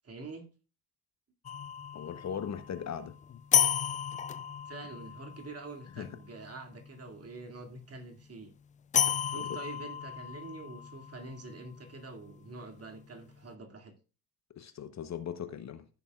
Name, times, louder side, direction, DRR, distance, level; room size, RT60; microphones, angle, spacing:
voice 1, 0.0-0.5 4.6-8.5 9.2-13.9, right 3 dB, 30° right, 2.4 m, -46 dB
sound 1, 1.4-7.6 8.9-13.0, left 8 dB, 20° left, 0.3 m, -34 dB
voice 2, 1.9-3.4 6.0-6.1 9.4-9.5 14.6-15.9, left 8 dB, 35° left, 1.0 m, -39 dB
15.0 x 7.0 x 2.4 m
hypercardioid pair, 60°, 47 cm